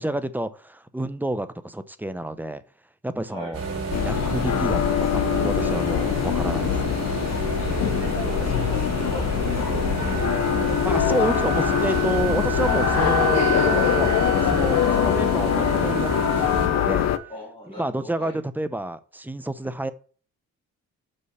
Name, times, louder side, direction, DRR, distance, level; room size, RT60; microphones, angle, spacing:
voice 1, 0.0-2.6 3.0-3.6 4.0-7.0 10.8-17.1 17.8-19.9, right 1 dB, 5° right, 12 dB, 0.7 m, -29 dB
sound 1, 3.5-16.7, right 5 dB, 50° right, 3.2 m, -30 dB
sound 2, 3.9-17.2, left 11 dB, 60° left, 0.7 m, -23 dB
voice 2, 7.6-11.2 17.3-18.4, equal, 20° left, -5 dB, 4.1 m, -40 dB
Wind instrument woodwind instrument, 9.6-17.3, right 18 dB, 75° right, 0.5 m, -33 dB
5.6 x 5.5 x 6.5 m, 0.41 s
cardioid pair, 90°, 30 cm